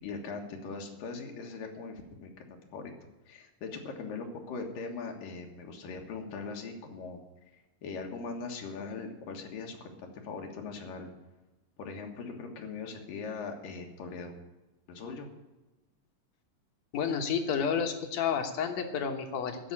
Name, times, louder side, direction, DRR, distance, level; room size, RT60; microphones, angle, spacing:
voice 1, 0.0-2.9 3.3-7.2 7.5-11.1 11.8-14.4 14.9-15.3, left 4 dB, 80° left, 2 dB, 3.2 m, -40 dB
voice 2, 16.9-19.7, left 7 dB, 60° left, 5 dB, 2.2 m, -30 dB
14.0 x 5.7 x 9.8 m, 1.1 s
omnidirectional pair, 4.0 m